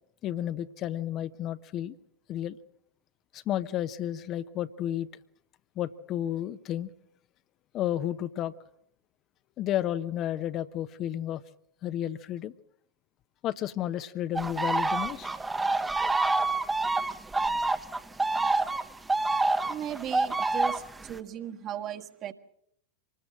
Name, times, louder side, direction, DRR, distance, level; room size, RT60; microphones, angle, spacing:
voice 1, 0.2-1.9 2.3-2.6 3.3-5.1 5.8-6.9 7.7-8.5 9.6-11.4 11.8-12.5 13.4-15.3, left 11 dB, 35° left, 0.8 m, -32 dB
sound 1, 14.4-21.1, right 3 dB, 10° right, 1.1 m, -27 dB
voice 2, 19.7-22.3, right 10 dB, 35° right, 1.6 m, -37 dB
25.5 x 20.0 x 6.4 m
figure-of-eight pair, 90°, 0 cm